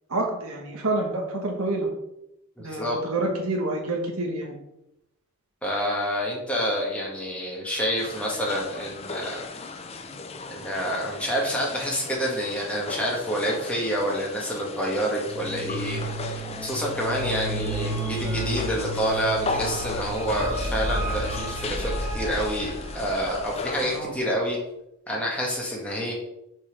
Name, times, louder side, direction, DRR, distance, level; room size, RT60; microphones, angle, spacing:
voice 1, 0.1-1.9 2.6-4.6 23.8-24.1, right 2 dB, 70° right, 1 dB, 1.3 m, -28 dB
voice 2, 2.6-3.0 5.6-9.5 10.5-24.6 25.1-26.1, equal, 5° left, -3 dB, 1.5 m, -28 dB
sound 1, 8.0-24.0, left 4 dB, 25° left, 0.5 m, -37 dB
sound 2, 15.2-23.5, right 1 dB, 15° right, 1.3 m, -32 dB
6.6 x 4.0 x 5.1 m, 0.85 s
head